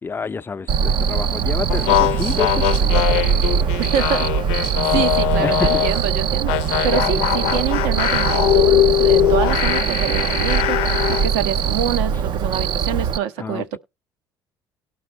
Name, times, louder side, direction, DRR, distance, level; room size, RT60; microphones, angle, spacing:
voice 1, 0.0-3.7 4.9-5.0 5.4-5.8 13.4-13.8, left 5 dB, 25° left, 0.6 m, -29 dB
Cricket, 0.7-13.2, right 7 dB, 60° right, 0.6 m, -21 dB
sound 1, 1.7-6.0 6.5-11.3, left 14 dB, 90° left, 0.6 m, -21 dB
voice 2, 3.9-4.3 4.9-13.8, right 10 dB, 90° right, 1.2 m, -26 dB
18.5 x 6.2 x 3.1 m
cardioid pair, 95°, 9 cm